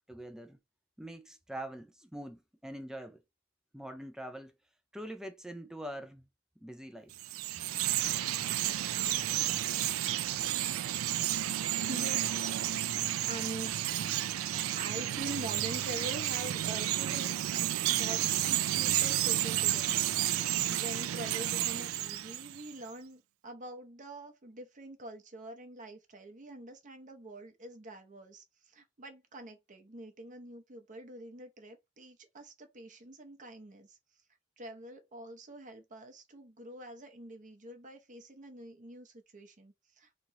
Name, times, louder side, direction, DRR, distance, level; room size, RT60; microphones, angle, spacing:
voice 1, 0.1-0.6 1.0-3.2 3.7-4.5 4.9-6.3 6.6-7.1, right 1 dB, 5° right, 0.4 m, -44 dB
Chirp tweet, 7.1-22.7, right 13 dB, 80° right, 0.4 m, -31 dB
voice 2, 11.9-12.4 13.2-34.0 34.6-40.1, right 1 dB, 40° right, 0.7 m, -45 dB
3.0 x 2.9 x 3.6 m
head